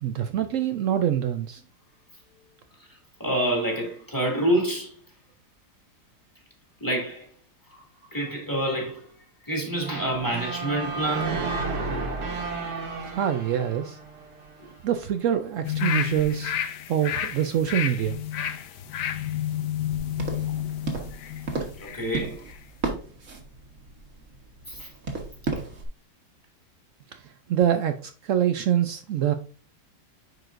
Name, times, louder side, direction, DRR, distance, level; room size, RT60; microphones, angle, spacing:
voice 1, 0.0-1.6 13.0-14.0 14.8-16.6 16.9-18.2 27.1-27.2 27.5-29.3, right 10 dB, 90° right, 0.6 m, -25 dB
voice 2, 3.2-4.9 6.8-7.3 7.7-7.8 8.1-9.1 9.4-11.4 21.8-22.4 24.7-24.9, right 1 dB, 10° left, 1.9 m, -27 dB
sound 1, 9.8-14.8, right 3 dB, 65° right, 2.1 m, -32 dB
sound 2, 15.6-22.1 22.5-22.6, left 10 dB, 75° left, 1.2 m, -30 dB
sound 3, 20.2-25.9, right 3 dB, 45° right, 1.5 m, -34 dB
9.6 x 4.7 x 2.5 m
omnidirectional pair, 1.9 m